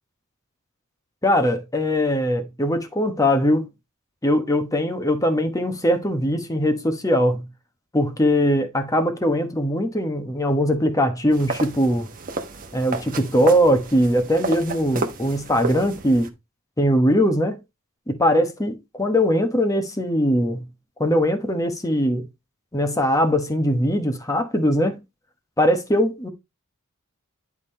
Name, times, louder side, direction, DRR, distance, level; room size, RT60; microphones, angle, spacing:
voice 1, 1.2-3.7 4.2-7.5 7.9-12.1 12.7-16.3 16.8-17.6 18.1-20.7 21.0-22.3 22.7-25.0 25.6-26.3, equal, 15° left, 1.2 m, -21 dB
sound 1, 11.3-16.3, right 3 dB, 40° right, 1.1 m, -32 dB
10.5 x 3.7 x 4.3 m
head